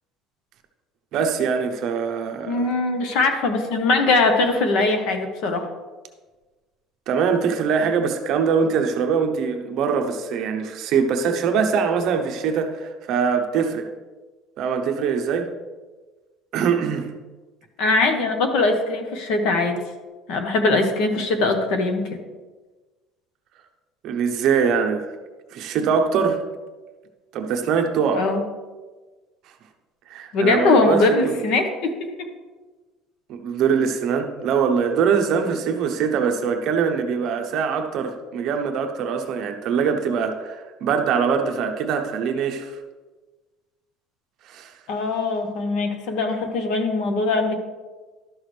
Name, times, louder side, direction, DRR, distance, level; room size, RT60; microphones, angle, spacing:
voice 1, 1.1-2.7 7.1-13.9 14.6-15.5 16.5-17.1 24.0-25.1 25.5-26.4 27.3-28.2 30.1-31.3 33.3-42.8 44.5-44.7, right 6 dB, 45° right, 5 dB, 0.8 m, -23 dB
voice 2, 2.4-5.7 17.8-19.8 20.3-22.2 28.1-28.4 30.3-32.3 44.9-47.6, left 3 dB, 60° left, 6 dB, 1.1 m, -21 dB
12.0 x 6.3 x 3.3 m, 1.3 s
cardioid pair, 175°, 0 cm